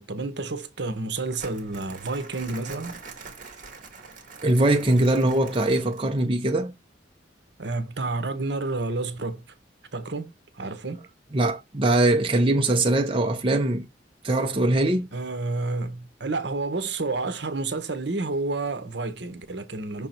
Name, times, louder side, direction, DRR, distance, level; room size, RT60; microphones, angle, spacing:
voice 1, 0.0-3.0 7.6-9.4 9.9-11.0 15.1-20.1, right 3 dB, 65° right, 1.1 m, -30 dB
Crumpling crinkling, 1.4-6.2, right 4 dB, 45° right, 1.9 m, -44 dB
voice 2, 4.4-6.7 11.3-13.9 14.2-15.1, right 2 dB, 30° right, 0.8 m, -22 dB
6.2 x 3.6 x 4.4 m
head